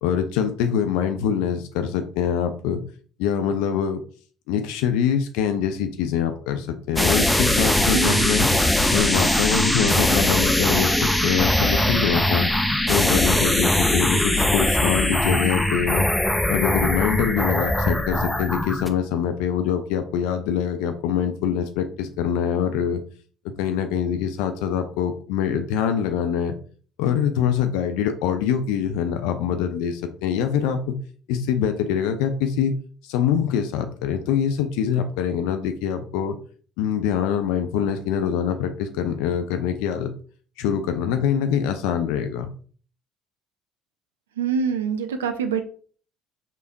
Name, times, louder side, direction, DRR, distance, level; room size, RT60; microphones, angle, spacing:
voice 1, 0.0-2.8 3.2-4.0 4.5-8.5 8.9-12.5 12.9-16.1 16.5-23.0 23.4-26.6 27.0-31.0 31.3-32.7 33.0-36.4 36.8-40.1 40.6-42.5, left 8 dB, 65° left, 8 dB, 0.4 m, -24 dB
sound 1, 7.0-18.9, left 1 dB, 5° left, 0.5 m, -21 dB
voice 2, 7.9-8.3 44.4-45.6, right 6 dB, 80° right, 8 dB, 0.3 m, -25 dB
4.4 x 3.4 x 2.5 m, 0.43 s
figure-of-eight pair, 55°, 0 cm